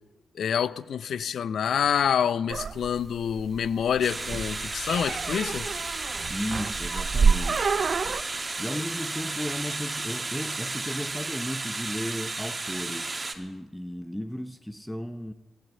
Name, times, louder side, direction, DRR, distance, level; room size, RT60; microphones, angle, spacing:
voice 1, 0.3-5.7, left 8 dB, 70° left, 0.5 m, -27 dB
sound 1, 2.5-8.2, right 5 dB, 55° right, 0.5 m, -28 dB
sound 2, 4.0-13.3, right 3 dB, 35° right, 2.1 m, -33 dB
voice 2, 6.3-7.7 8.6-15.3, equal, 5° left, 0.8 m, -35 dB
15.0 x 13.0 x 7.4 m
supercardioid pair, 45°, 0 cm